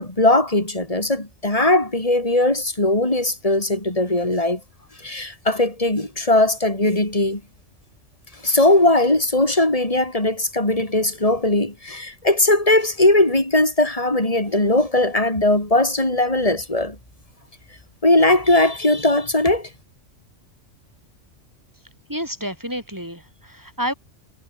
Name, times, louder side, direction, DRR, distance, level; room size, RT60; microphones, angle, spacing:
voice 1, 0.0-4.6 5.0-7.4 8.4-17.0 18.0-19.7, left 2 dB, 30° left, 4.9 m, -19 dB
voice 2, 22.1-23.9, equal, 15° right, 5.0 m, -29 dB
omnidirectional pair, 1.3 m